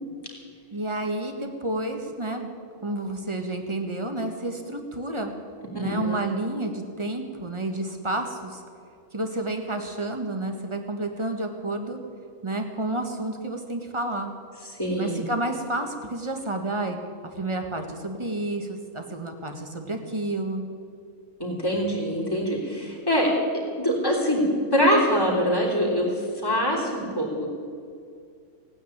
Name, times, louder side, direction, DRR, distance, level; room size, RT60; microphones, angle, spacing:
voice 1, 0.7-2.5 2.8-5.3 5.7-8.6 9.1-12.0 12.4-14.3 15.0-17.0 17.3-20.6, right 2 dB, 20° right, 4 dB, 1.5 m, -30 dB
voice 2, 5.7-6.2 14.8-15.2 21.4-23.3 23.8-24.4 24.7-26.1 26.4-27.5, equal, 15° left, -1 dB, 3.5 m, -24 dB
17.0 x 9.5 x 8.7 m, 2.3 s
omnidirectional pair, 1.5 m